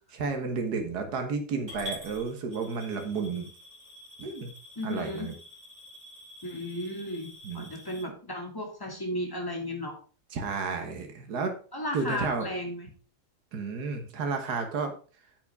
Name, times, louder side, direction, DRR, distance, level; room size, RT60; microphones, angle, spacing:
voice 1, 0.2-3.5 4.2-4.5 4.8-5.3 7.4-7.7 10.3-11.6 11.9-12.5 13.5-14.9, right 4 dB, 80° right, 5 dB, 1.9 m, -32 dB
Coin (dropping) / Glass, 1.7-8.0, left 1 dB, 60° right, 5.7 m, -47 dB
voice 2, 4.8-5.3 6.4-7.3 7.5-10.0 11.7-12.9, left 1 dB, 15° left, 0 dB, 2.4 m, -34 dB
9.5 x 7.8 x 3.6 m, 0.38 s
omnidirectional pair, 1.7 m